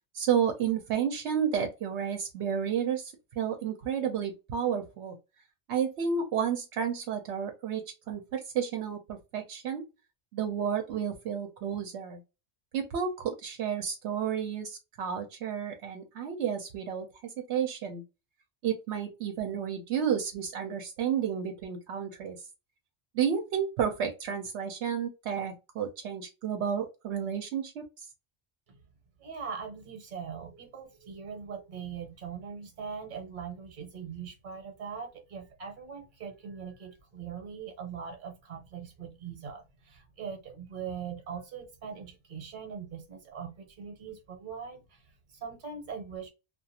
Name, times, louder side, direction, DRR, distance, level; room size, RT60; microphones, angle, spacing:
voice 1, 0.1-5.2 5.7-9.8 10.3-12.2 12.7-18.0 18.6-22.4 23.1-27.9, right 8 dB, 80° right, 0.8 m, -31 dB
voice 2, 29.2-46.3, right 6 dB, 50° right, 1.0 m, -41 dB
2.4 x 2.3 x 2.7 m
omnidirectional pair, 1.1 m